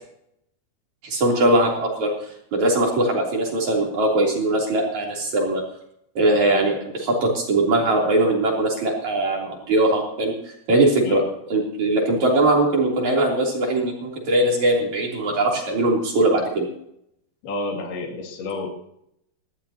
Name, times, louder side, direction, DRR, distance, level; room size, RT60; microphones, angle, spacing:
voice 1, 1.0-2.1 2.5-5.6 6.2-10.3 10.7-16.7, right 1 dB, 45° right, -1 dB, 4.4 m, -21 dB
voice 2, 17.4-18.7, left 2 dB, 70° left, 1 dB, 4.3 m, -30 dB
19.5 x 15.5 x 2.9 m, 0.74 s
omnidirectional pair, 4.6 m